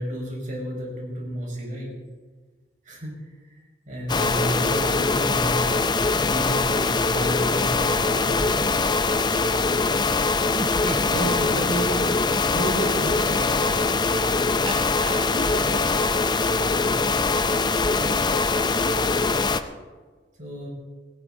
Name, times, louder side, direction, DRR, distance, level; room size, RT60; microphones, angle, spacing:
voice 1, 0.0-1.9 2.8-3.1 3.9-8.5 11.1-12.1 12.5-13.8 16.7-16.9 20.4-20.7, equal, 45° right, -1 dB, 5.3 m, -30 dB
sound 1, 4.1-19.6, left 3 dB, 25° left, 0.6 m, -22 dB
Laughter, 10.5-15.9, right 3 dB, 30° right, 0.4 m, -38 dB
voice 2, 10.9-11.6 15.3-16.2 17.7-19.0, left 2 dB, 65° left, 3 dB, 1.9 m, -38 dB
18.0 x 17.0 x 3.8 m, 1.4 s
head